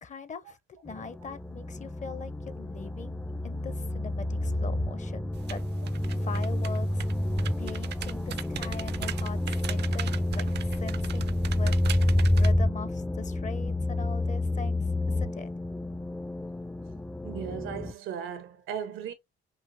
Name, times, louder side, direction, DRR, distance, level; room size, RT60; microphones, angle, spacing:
voice 1, 0.0-0.6 0.8-5.6 6.2-7.0 7.6-11.7 12.4-14.8 15.2-15.5, left 5 dB, 35° left, 0.7 m, -41 dB
sound 1, 0.9-17.9, left 1 dB, 5° left, 0.4 m, -29 dB
sound 2, 5.3-12.5, right 10 dB, 60° right, 0.5 m, -40 dB
voice 2, 17.2-19.1, right 8 dB, 90° right, 1.1 m, -36 dB
5.5 x 2.7 x 2.7 m
cardioid pair, 90°, 20 cm